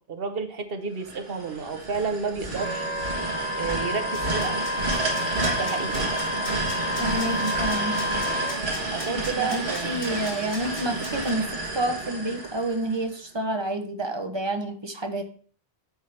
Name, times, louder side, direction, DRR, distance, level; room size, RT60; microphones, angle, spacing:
voice 1, 0.1-2.9 3.6-4.6 5.6-6.2 8.9-10.1, right 5 dB, 65° right, 7 dB, 1.1 m, -31 dB
sound 1, 1.0-13.1, right 2 dB, 80° right, 1.7 m, -30 dB
Wind instrument woodwind instrument, 2.5-8.6, left 1 dB, 45° right, 2.3 m, -30 dB
sound 2, 4.1-11.3, left 1 dB, 90° left, 3.3 m, -40 dB
voice 2, 7.0-8.0 9.1-15.2, right 1 dB, 30° right, 6 dB, 0.8 m, -29 dB
8.0 x 5.5 x 3.3 m, 0.43 s
omnidirectional pair, 1.1 m